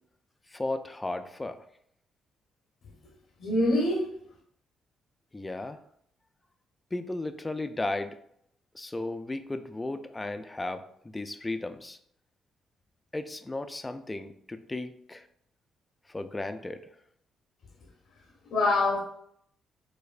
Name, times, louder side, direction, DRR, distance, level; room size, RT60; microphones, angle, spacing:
voice 1, 0.5-1.7 5.3-5.8 6.9-8.2 8.7-12.0 13.1-15.3 16.1-16.8, left 2 dB, 15° left, 9 dB, 0.3 m, -35 dB
voice 2, 3.4-4.0 18.5-19.0, left 2 dB, 65° left, 0 dB, 0.7 m, -24 dB
4.2 x 2.5 x 2.4 m, 0.70 s
cardioid pair, 90°, 0 cm